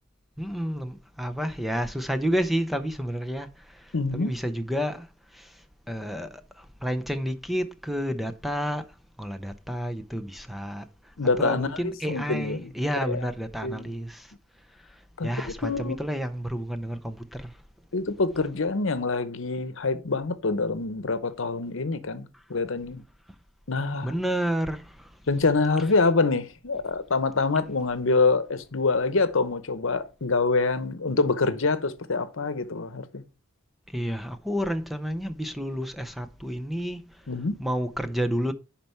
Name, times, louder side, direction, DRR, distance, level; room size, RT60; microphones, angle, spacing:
voice 1, 0.4-14.3 14.8-17.6 22.3-22.4 24.0-25.2 33.9-37.3 37.6-38.5, equal, ahead, 0.6 m, -31 dB
voice 2, 3.9-4.3 11.2-12.7 13.1-13.2 13.6-13.9 15.2-16.0 17.9-23.0 23.7-24.1 25.3-33.2 37.3-37.6, left 3 dB, 70° left, 0.9 m, -26 dB
11.0 x 4.4 x 4.4 m
head